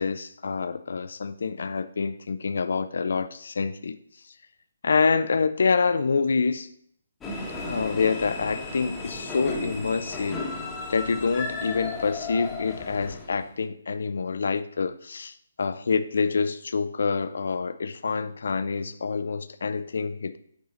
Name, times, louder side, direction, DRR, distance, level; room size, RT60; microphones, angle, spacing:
voice 1, 0.0-4.0 4.8-6.7 7.6-10.5 10.9-20.4, left 5 dB, 55° left, 0.4 m, -26 dB
sound 1, 7.2-13.5, left 3 dB, 10° left, 1.0 m, -34 dB
8.8 x 3.7 x 4.0 m
figure-of-eight pair, 140°, 0 cm